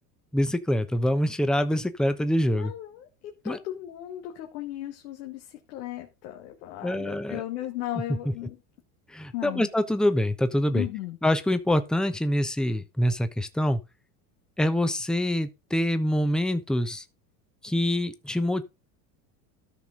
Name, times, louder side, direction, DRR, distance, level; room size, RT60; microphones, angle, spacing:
voice 1, 0.3-2.7 3.4-3.6 6.8-7.4 9.1-10.8 11.2-13.8 14.6-17.0 17.6-18.6, left 1 dB, ahead, 0.9 m, -25 dB
voice 2, 2.5-3.1 3.4-8.6 9.3-9.7 10.7-11.2, left 14 dB, 80° left, 1.8 m, -36 dB
13.5 x 5.9 x 3.9 m
supercardioid pair, 95°, 47 cm